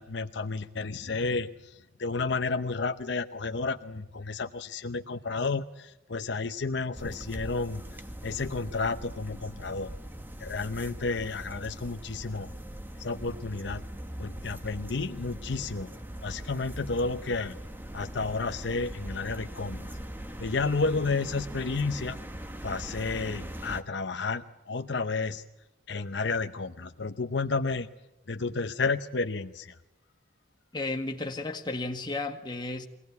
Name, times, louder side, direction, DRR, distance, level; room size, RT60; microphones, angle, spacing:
voice 1, 0.0-1.5 2.0-7.8 8.2-9.9 10.4-12.5 13.0-13.8 14.2-15.9 16.2-17.6 17.9-20.0 20.4-22.2 22.6-25.4 25.9-27.9 28.3-29.7, left 3 dB, 65° left, 7 dB, 0.8 m, -31 dB
sound 1, 6.9-23.8, right 1 dB, 10° right, 1.1 m, -41 dB
voice 2, 30.7-32.9, left 2 dB, 25° left, 4 dB, 1.7 m, -33 dB
23.0 x 18.0 x 9.4 m, 0.95 s
head